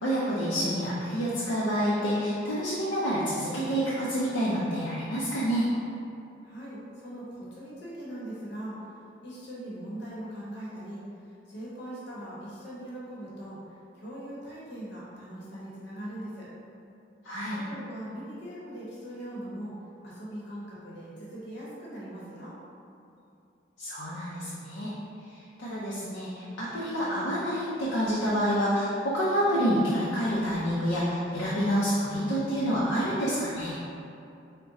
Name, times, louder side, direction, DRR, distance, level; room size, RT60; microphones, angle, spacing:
voice 1, 0.0-5.7 17.2-17.6 23.8-24.9 25.2-33.8, equal, 85° left, -8 dB, 0.6 m, -28 dB
voice 2, 6.4-8.9 9.2-13.6 13.9-16.5 17.5-19.7 20.0-22.6, right 1 dB, 60° left, -7 dB, 0.9 m, -40 dB
3.6 x 2.1 x 3.9 m, 2.7 s
head